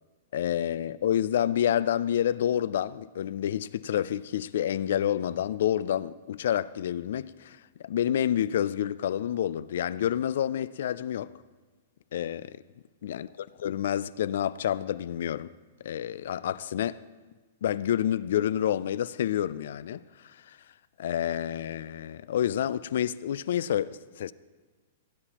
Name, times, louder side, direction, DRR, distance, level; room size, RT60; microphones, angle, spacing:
voice 1, 0.3-7.6 7.8-11.3 12.1-12.6 13.0-15.5 15.8-17.0 17.6-20.6 21.0-24.3, left 10 dB, 60° left, 0.3 m, -28 dB
17.0 x 9.8 x 2.9 m
supercardioid pair, 175°, 0 cm